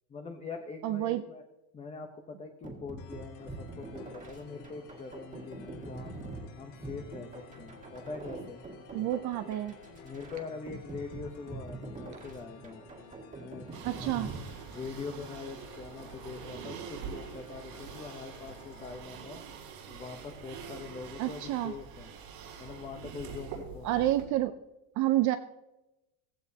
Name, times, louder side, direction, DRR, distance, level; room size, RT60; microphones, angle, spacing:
voice 1, 0.1-1.4 1.7-6.1 6.6-8.6 9.4-9.5 10.0-12.8 13.4-13.7 14.0-14.1 14.7-19.4 19.9-22.1 22.6-24.1, left 4 dB, 15° left, 4 dB, 0.6 m, -43 dB
voice 2, 0.8-1.2 8.9-9.8 13.8-14.3 21.2-21.7 23.8-24.5 25.0-25.4, right 14 dB, 40° right, 9 dB, 0.4 m, -29 dB
sound 1, 2.6-15.2, right 2 dB, 15° right, 1.8 m, -45 dB
sound 2, 3.0-19.0, left 4 dB, 65° left, 3.4 m, -53 dB
sound 3, 13.7-24.2, right 7 dB, 90° right, 4.7 m, -45 dB
16.0 x 15.5 x 2.7 m, 0.99 s
cardioid pair, 165°, 49 cm